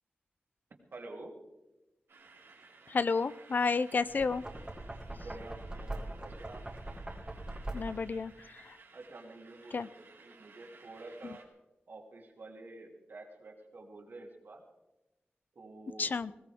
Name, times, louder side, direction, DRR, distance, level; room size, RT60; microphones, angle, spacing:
voice 1, 0.9-1.3 5.0-6.6 8.9-11.4 11.9-14.6 15.5-16.1, right 2 dB, 60° right, 0 dB, 2.9 m, -49 dB
sound 1, 2.1-11.4, right 4 dB, 90° right, 2.9 m, -58 dB
voice 2, 2.9-4.4 7.7-8.7 9.7-9.9 11.2-11.3 16.0-16.3, left 4 dB, 50° left, 16 dB, 0.4 m, -31 dB
Knock, 4.0-8.2, right 1 dB, 20° right, 2.0 m, -42 dB
20.5 x 17.5 x 3.6 m, 1.0 s
wide cardioid pair, 145°, 4 cm